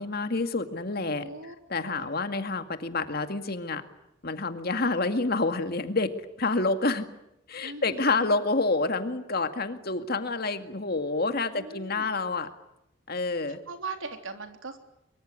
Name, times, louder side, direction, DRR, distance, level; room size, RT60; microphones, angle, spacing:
voice 1, 0.0-1.3 1.7-3.8 4.2-6.1 6.4-7.1 7.5-12.5 13.1-13.6, left 3 dB, 50° left, 8 dB, 2.1 m, -28 dB
voice 2, 1.2-2.1 4.7-5.0 7.6-8.3 11.5-12.1 13.5-14.8, right 3 dB, 75° right, 6 dB, 3.5 m, -40 dB
24.5 x 24.0 x 9.8 m, 0.82 s
head